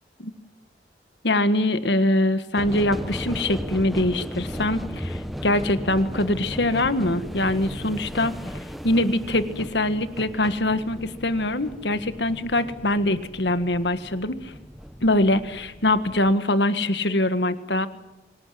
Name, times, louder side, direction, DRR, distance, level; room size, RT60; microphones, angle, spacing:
voice 1, 1.2-8.3 8.8-14.5 15.0-17.9, left 1 dB, 75° left, 11 dB, 1.7 m, -23 dB
sound 1, 2.6-16.3, equal, ahead, 1.0 m, -36 dB
25.5 x 18.5 x 7.9 m, 1.0 s
head